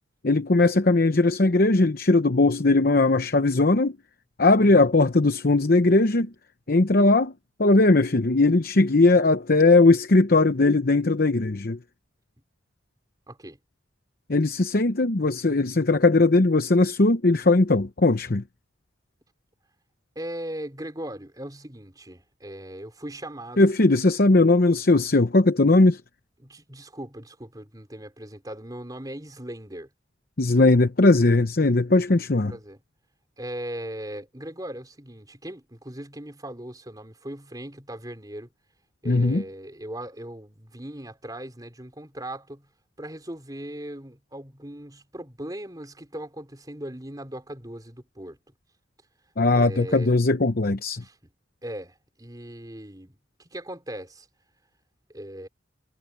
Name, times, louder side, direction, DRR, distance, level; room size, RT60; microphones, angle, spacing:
voice 1, 0.2-3.9 4.4-6.3 6.7-7.3 7.6-11.8 14.3-18.4 23.6-26.0 30.4-32.5 39.0-39.4 49.4-51.0, left 2 dB, 50° left, 0.9 m, -19 dB
voice 2, 4.6-4.9 13.3-13.6 20.1-23.7 26.4-29.9 32.4-32.8 33.4-38.5 39.0-42.7 43.0-48.4 49.5-50.1 51.0-51.1 51.6-54.3 55.1-55.5, right 1 dB, 20° right, 4.6 m, -38 dB
head